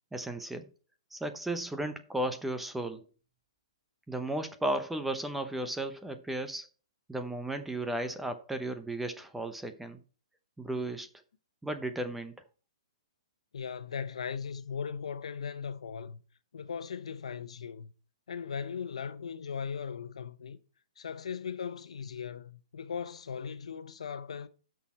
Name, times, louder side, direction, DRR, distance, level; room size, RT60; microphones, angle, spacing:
voice 1, 0.1-0.7 1.1-3.0 4.1-6.7 7.1-10.0 10.6-11.1 11.6-12.3, right 1 dB, 5° right, 0.7 m, -34 dB
voice 2, 13.5-16.2 16.5-17.9 18.3-20.6 21.0-24.5, left 6 dB, 80° left, 1.1 m, -38 dB
11.5 x 6.3 x 4.3 m
hypercardioid pair, 160°, 3 cm